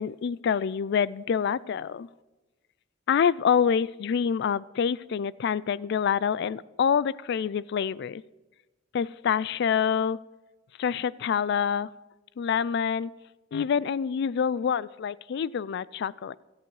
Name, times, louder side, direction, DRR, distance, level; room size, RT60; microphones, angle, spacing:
voice 1, 0.0-2.1 3.1-8.2 8.9-10.2 10.8-11.9 12.4-13.1 13.5-16.4, left 7 dB, 55° left, 20 dB, 0.3 m, -26 dB
17.0 x 13.5 x 3.2 m, 1.2 s
head